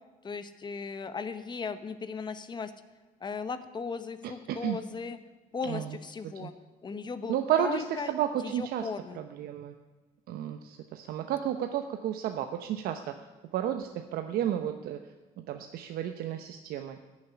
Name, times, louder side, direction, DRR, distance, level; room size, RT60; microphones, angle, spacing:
voice 1, 0.2-2.7 3.2-5.2 5.5-6.5 6.8-8.1 8.4-9.2, left 5 dB, 30° left, 11 dB, 1.0 m, -37 dB
voice 2, 4.2-4.8 5.6-6.0 6.2-6.5 7.3-8.9 9.1-9.7 10.3-13.1 13.5-15.0 15.4-17.0, right 10 dB, 90° right, 6 dB, 0.8 m, -32 dB
14.5 x 7.5 x 9.8 m, 1.2 s
cardioid pair, 135°, 15 cm